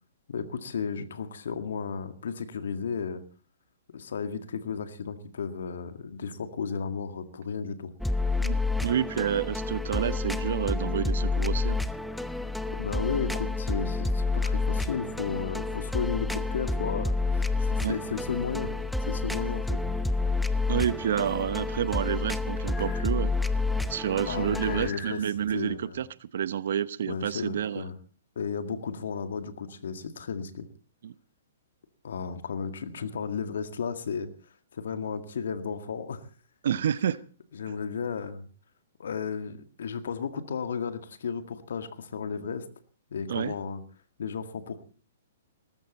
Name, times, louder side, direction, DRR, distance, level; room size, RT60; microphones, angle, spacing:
voice 1, 0.3-3.2 3.9-7.9 12.8-18.7 19.1-19.8 24.3-25.2 25.5-26.0 27.0-28.0 28.4-30.7 32.0-34.3 34.7-36.2 37.5-38.5 39.0-42.7 43.1-43.8 44.2-44.8, left 6 dB, 65° left, 9 dB, 1.9 m, -34 dB
sound 1, 8.0-24.9, left 3 dB, ahead, 0.8 m, -29 dB
voice 2, 8.8-11.8 17.8-18.0 20.7-23.3 23.9-27.9 31.0-31.1 36.6-37.2 43.3-43.6, right 9 dB, 60° right, 17 dB, 0.9 m, -29 dB
sound 2, 17.3-25.7, right 7 dB, 40° right, 5.3 m, -48 dB
sound 3, 22.6-23.1 24.4-25.2, left 6 dB, 25° left, 7.8 m, -42 dB
18.5 x 15.0 x 4.2 m, 0.39 s
figure-of-eight pair, 120°, 0 cm